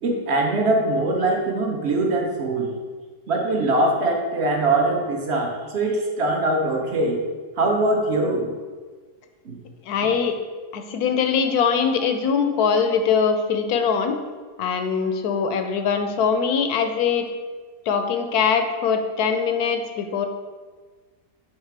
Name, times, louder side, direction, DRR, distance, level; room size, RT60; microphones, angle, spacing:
voice 1, 0.0-2.7 3.3-7.2 7.6-8.5 9.5-9.6, right 2 dB, 45° right, 1 dB, 1.0 m, -22 dB
voice 2, 9.8-10.4 10.7-14.2 14.6-17.3 17.9-20.3, left 6 dB, 70° left, 7 dB, 1.0 m, -22 dB
7.4 x 3.5 x 4.6 m, 1.4 s
omnidirectional pair, 1.8 m